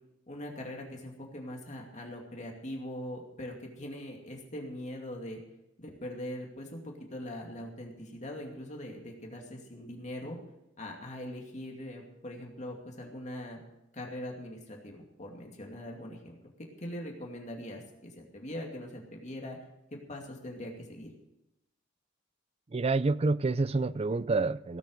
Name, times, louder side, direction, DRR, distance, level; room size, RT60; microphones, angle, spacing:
voice 1, 0.3-5.4 5.8-10.4 10.8-13.6 13.9-16.4 16.8-19.6 20.1-21.1, left 1 dB, 40° left, 1 dB, 2.4 m, -41 dB
voice 2, 22.7-24.8, right 3 dB, 30° right, 16 dB, 0.5 m, -28 dB
17.5 x 8.3 x 6.4 m, 0.90 s
head